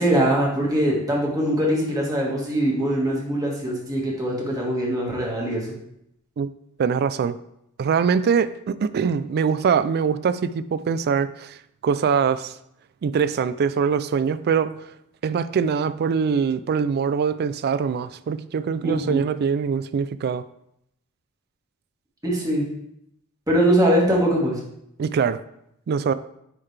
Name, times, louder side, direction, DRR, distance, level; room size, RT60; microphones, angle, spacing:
voice 1, 0.0-5.8 18.8-19.2 22.2-22.6 23.5-24.6, right 1 dB, 15° right, -3 dB, 1.6 m, -22 dB
voice 2, 6.8-7.4 7.8-11.6 11.8-12.6 13.0-14.7 15.2-20.4 25.0-25.4 25.9-26.1, right 6 dB, 45° right, 14 dB, 0.3 m, -23 dB
9.6 x 3.9 x 3.2 m, 0.78 s
head